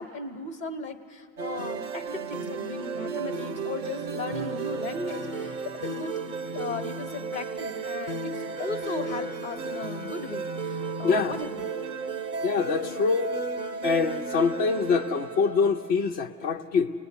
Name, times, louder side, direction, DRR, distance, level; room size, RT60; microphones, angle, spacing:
voice 1, 0.0-6.1 6.5-8.3 8.6-11.6, left 3 dB, 45° left, 8 dB, 1.4 m, -36 dB
sound 1, 1.4-15.9, right 4 dB, 50° right, 0.9 m, -34 dB
voice 2, 11.0-11.3 12.4-13.3 13.8-16.9, left 5 dB, 85° left, 3 dB, 1.1 m, -24 dB
29.5 x 20.0 x 9.8 m, 2.8 s
omnidirectional pair, 1.1 m